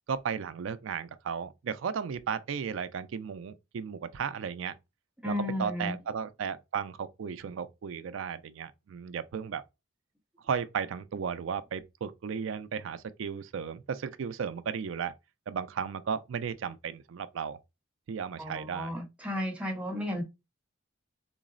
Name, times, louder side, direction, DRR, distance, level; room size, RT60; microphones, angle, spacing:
voice 1, 0.1-4.7 5.2-5.3 5.6-9.6 10.4-15.1 15.5-17.6 18.1-18.9, right 6 dB, 75° right, 0.4 m, -35 dB
voice 2, 5.2-6.0 18.4-20.2, left 1 dB, 5° right, 0.8 m, -33 dB
3.8 x 2.0 x 2.4 m
head